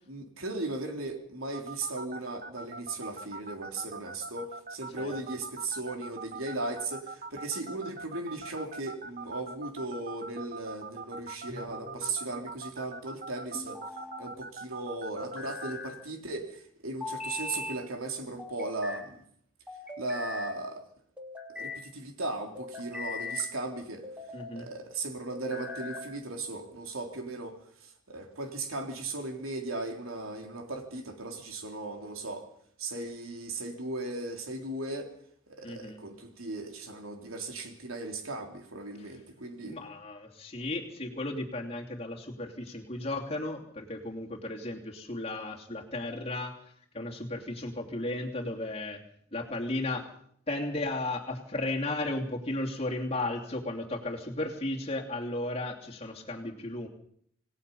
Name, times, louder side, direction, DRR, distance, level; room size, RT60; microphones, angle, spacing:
voice 1, 0.1-13.8 14.2-19.2 20.0-20.8 21.5-24.1 24.5-32.5 32.8-35.1 35.5-39.8, right 2 dB, 90° right, 3 dB, 3.7 m, -37 dB
sound 1, 1.5-15.7, right 4 dB, 40° right, 0.9 m, -41 dB
sound 2, 11.5-12.2 13.5-14.3 15.2-16.0 17.0-17.8 18.4-19.1 19.7-20.5 21.2-21.8 22.5-23.5 24.0-24.6 25.3-26.1, left 3 dB, 5° right, 3.1 m, -40 dB
voice 2, 24.3-24.7 35.6-36.0 39.6-46.6 46.9-49.0 49.3-50.1 50.5-56.9, left 2 dB, 30° left, 1 dB, 2.9 m, -34 dB
27.5 x 18.0 x 5.6 m, 0.66 s
head